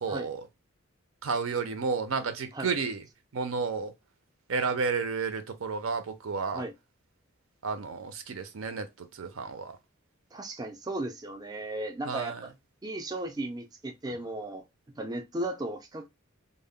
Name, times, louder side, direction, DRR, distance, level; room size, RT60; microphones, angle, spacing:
voice 1, 0.0-0.5 1.2-3.0 3.3-3.9 4.5-6.6 7.6-9.8 12.1-12.4, right 5 dB, 80° right, 0.5 m, -31 dB
voice 2, 10.3-12.5 12.8-14.6 15.0-16.1, right 1 dB, 20° right, 0.4 m, -35 dB
2.1 x 2.0 x 3.5 m
head